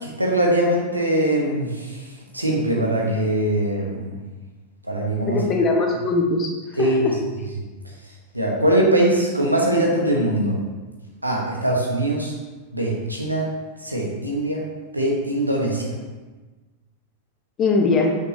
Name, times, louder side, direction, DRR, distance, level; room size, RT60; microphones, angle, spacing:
voice 1, 0.0-1.7 2.3-4.1 4.9-5.4 6.8-7.0 8.3-10.6 11.2-12.3 12.7-13.4 13.8-14.6 14.9-15.9, right 1 dB, 85° right, -1 dB, 1.1 m, -21 dB
voice 2, 5.2-7.2 17.6-18.2, left 3 dB, 30° left, 1 dB, 1.0 m, -21 dB
6.2 x 5.3 x 3.1 m, 1.2 s
figure-of-eight pair, 90°, 0 cm